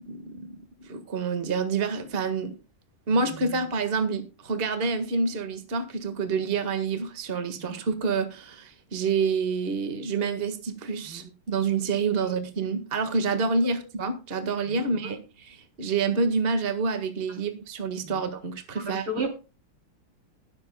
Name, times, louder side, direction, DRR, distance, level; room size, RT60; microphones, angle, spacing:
voice 1, 0.1-0.5 0.8-2.5 3.1-19.1, right 4 dB, 30° right, 8 dB, 1.8 m, -28 dB
voice 2, 18.8-19.3, right 1 dB, 75° right, 4 dB, 4.2 m, -33 dB
20.5 x 8.3 x 2.3 m, 0.31 s
omnidirectional pair, 2.2 m